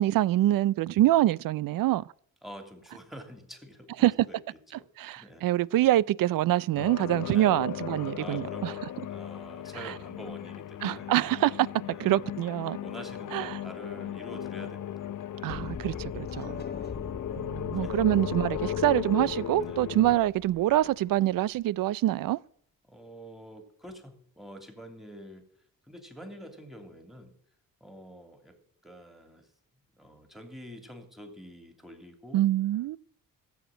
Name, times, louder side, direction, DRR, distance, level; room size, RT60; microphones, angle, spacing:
voice 1, 0.0-2.0 4.0-4.1 5.0-8.7 9.8-9.9 10.8-11.7 12.0-12.8 13.3-13.6 15.4-16.6 17.4-22.4 32.3-33.0, right 14 dB, 70° right, 0.5 m, -25 dB
voice 2, 2.4-4.4 4.7-4.8 5.2-5.5 7.3-7.6 8.1-11.1 11.9-12.2 12.8-15.6 16.5-17.0 17.8-18.0 19.6-19.9 22.9-25.4 25.9-27.3 27.8-28.6 28.8-29.5 30.0-32.4, equal, ahead, 2.9 m, -47 dB
sound 1, 6.8-20.2, left 10 dB, 60° left, 0.7 m, -36 dB
sound 2, 15.5-21.5, left 5 dB, 30° left, 1.0 m, -42 dB
14.0 x 7.2 x 9.0 m
cardioid pair, 75°, 35 cm